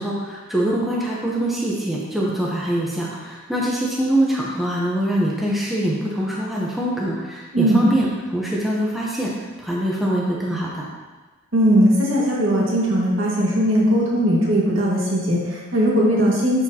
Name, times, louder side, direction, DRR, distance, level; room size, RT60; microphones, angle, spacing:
voice 1, 0.0-10.9, right 1 dB, ahead, -5 dB, 0.8 m, -24 dB
voice 2, 7.5-7.9 11.5-16.6, equal, 65° right, -5 dB, 1.8 m, -19 dB
12.0 x 4.2 x 2.8 m, 1.3 s
head